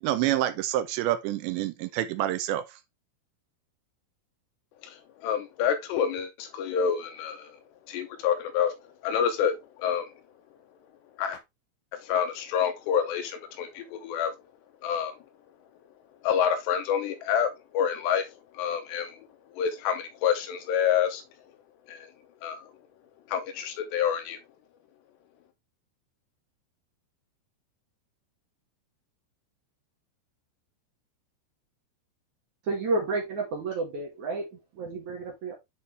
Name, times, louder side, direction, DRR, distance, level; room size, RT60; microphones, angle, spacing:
voice 1, 0.0-2.8, right 13 dB, 85° right, 2.8 m, -27 dB
voice 2, 4.8-7.6 7.9-8.7 9.0-10.1 11.2-11.4 11.9-14.3 14.8-15.1 16.2-19.2 19.5-21.2 21.9-22.1 22.4-22.7 23.3-24.4, left 8 dB, 80° left, 2.8 m, -28 dB
voice 3, 32.6-35.5, right 3 dB, 55° right, 2.3 m, -31 dB
8.3 x 4.5 x 3.3 m
omnidirectional pair, 5.3 m